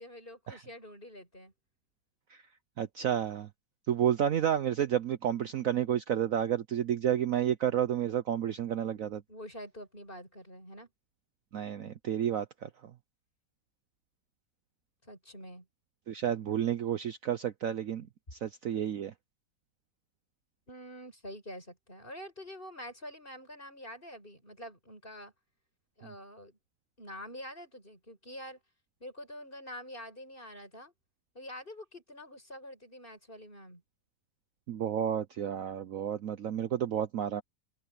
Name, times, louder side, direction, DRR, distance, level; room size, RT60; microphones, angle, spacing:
voice 1, 0.0-1.5 9.3-10.9 15.0-15.7 20.7-25.3 26.0-26.6 27.0-28.6 29.0-30.9 31.3-33.8, equal, 30° left, 8.3 m, -46 dB
voice 2, 2.8-3.5 3.9-9.2 11.5-12.9 16.1-18.1 18.3-19.1 34.7-37.4, right 9 dB, 60° right, 1.0 m, -31 dB
omnidirectional pair, 1.9 m